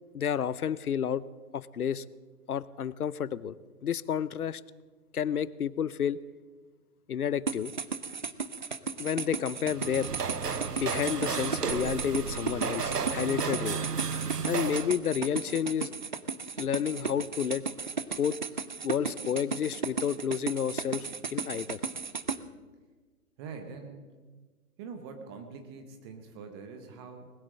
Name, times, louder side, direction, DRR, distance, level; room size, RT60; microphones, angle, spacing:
voice 1, 0.1-1.2 1.5-2.0 2.5-4.6 5.1-6.2 7.1-7.7 9.0-10.1 10.8-13.8 14.5-15.9 16.6-17.6 18.2-18.3 18.8-21.8, left 8 dB, 70° left, 20 dB, 0.7 m, -30 dB
sound 1, 7.5-22.4, right 5 dB, 35° right, 0.4 m, -35 dB
sound 2, 9.6-15.0, right 6 dB, 85° right, 0.9 m, -33 dB
voice 2, 23.4-24.1 24.8-27.3, right 5 dB, 15° right, 6 dB, 0.9 m, -44 dB
20.0 x 8.7 x 7.6 m, 1.4 s
figure-of-eight pair, 135°, 46 cm